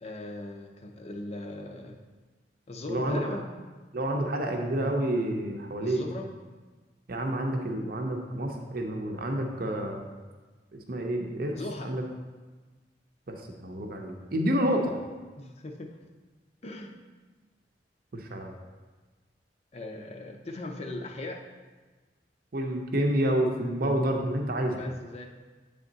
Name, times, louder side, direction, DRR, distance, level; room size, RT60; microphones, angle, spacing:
voice 1, 0.0-2.0 2.7-3.5 5.8-6.3 11.6-12.0 15.4-16.0 16.6-16.9 19.7-21.5 24.8-25.3, left 2 dB, 35° left, 2 dB, 0.5 m, -39 dB
voice 2, 2.9-3.4 3.9-6.0 7.1-10.1 10.7-12.0 13.3-14.9 18.1-18.5 22.5-24.8, right 1 dB, 55° right, 2 dB, 0.7 m, -29 dB
8.3 x 3.5 x 3.9 m, 1.3 s
head